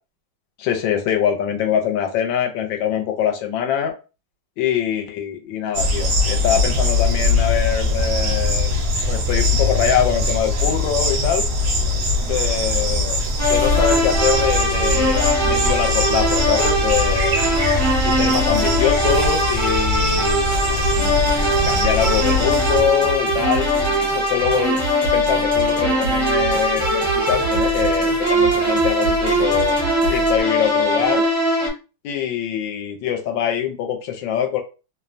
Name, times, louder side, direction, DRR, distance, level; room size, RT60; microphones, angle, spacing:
voice 1, 0.6-3.9 4.6-8.7 9.1-11.5 12.2-13.2 13.5-17.4 18.0-20.4 21.0-29.8 30.1-31.3 32.0-34.6, left 9 dB, 75° left, 3 dB, 1.3 m, -23 dB
sound 1, 5.7-22.8, left 2 dB, 65° right, 0.8 m, -21 dB
sound 2, 13.4-31.7, equal, 15° right, 0.5 m, -21 dB
sound 3, 20.4-30.4, right 2 dB, 55° left, 1.3 m, -30 dB
3.1 x 2.1 x 2.5 m, 0.32 s
omnidirectional pair, 2.1 m